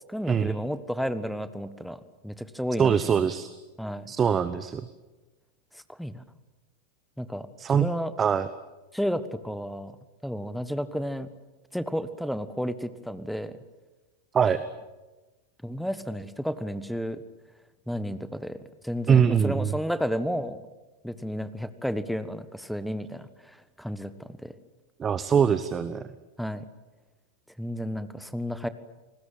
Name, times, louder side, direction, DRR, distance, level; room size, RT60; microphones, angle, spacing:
voice 1, 0.1-3.2 3.8-4.1 5.7-6.2 7.2-8.1 8.9-9.9 10.2-11.3 11.7-13.6 15.6-17.2 17.9-18.6 18.8-20.6 21.0-24.5 26.4-26.6 27.6-28.7, equal, ahead, 14 dB, 1.3 m, -32 dB
voice 2, 2.8-3.5 4.1-4.8 7.6-7.9 8.2-8.5 14.3-14.6 19.1-19.7 25.0-26.0, right 7 dB, 20° right, 14 dB, 1.0 m, -22 dB
29.0 x 20.0 x 8.8 m, 1.2 s
figure-of-eight pair, 90°, 0 cm